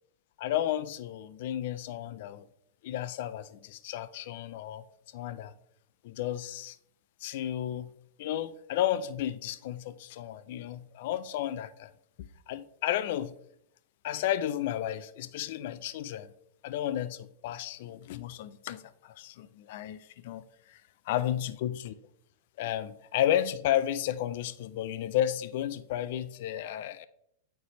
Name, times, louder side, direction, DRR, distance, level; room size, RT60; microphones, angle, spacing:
voice 1, 0.4-2.5 2.8-4.8 5.1-5.5 6.0-6.8 7.2-7.9 8.2-11.9 12.2-13.3 14.0-16.3 16.6-20.4 20.7-20.8 21.1-21.9 22.6-27.1, left 11 dB, 60° left, 0.4 m, -32 dB
9.1 x 3.4 x 3.0 m
hypercardioid pair, 110°, 0 cm